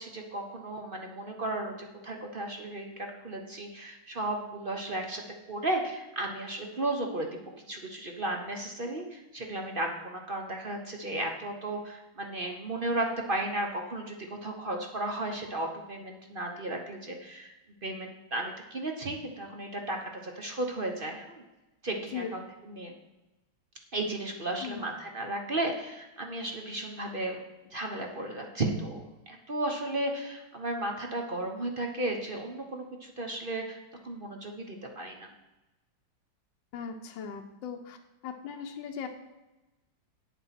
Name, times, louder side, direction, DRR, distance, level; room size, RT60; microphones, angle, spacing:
voice 1, 0.0-5.2 5.5-7.4 7.7-14.2 14.4-17.5 17.8-21.4 21.8-22.9 23.9-27.4 27.7-33.8 34.0-35.3, right 2 dB, 40° right, 3 dB, 0.8 m, -34 dB
voice 2, 36.7-38.0 38.2-39.1, left 7 dB, 70° left, 4 dB, 1.4 m, -38 dB
9.4 x 7.0 x 5.8 m, 1.0 s
omnidirectional pair, 2.2 m